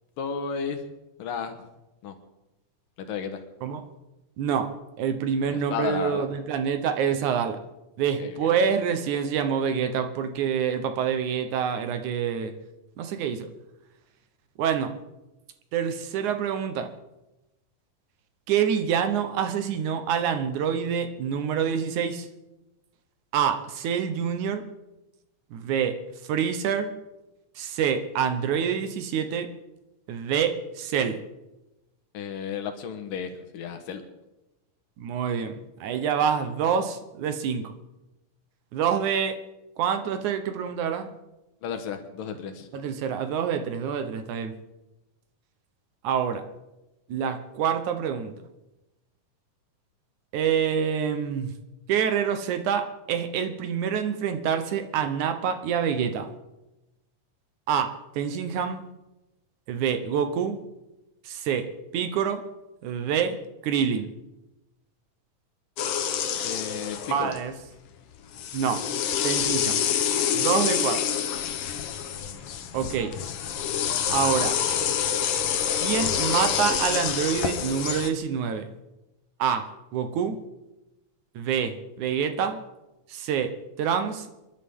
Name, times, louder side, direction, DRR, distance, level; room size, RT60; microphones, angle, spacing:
voice 1, 0.2-0.9 1.2-1.6 2.0-2.1 3.0-3.4 5.5-6.3 8.2-8.5 32.1-34.0 41.6-42.7 66.4-67.4, left 7 dB, 85° left, 6 dB, 3.1 m, -33 dB
voice 2, 4.4-4.7 5.0-7.6 8.0-12.5 13.0-13.5 14.6-14.9 15.7-16.9 18.5-22.3 23.3-24.7 25.5-26.0 26.3-26.9 27.6-29.5 30.1-31.2 35.0-37.7 38.7-39.4 39.8-41.1 42.7-44.5 46.0-46.5 47.1-48.3 50.3-51.5 51.9-56.3 57.7-58.8 59.7-60.6 61.2-62.4 62.8-63.4 63.6-64.1 67.1-67.5 68.5-68.8 69.2-69.8 70.3-71.0 72.7-73.1 74.1-74.6 75.8-78.7 79.4-79.7 79.9-80.4 81.4-82.6 83.1-84.3, right 7 dB, 70° right, 8 dB, 2.4 m, -26 dB
sound 1, 65.8-67.5 68.3-78.1, left 8 dB, 65° left, 1.5 m, -27 dB
27.5 x 11.5 x 3.7 m, 0.98 s
omnidirectional pair, 3.8 m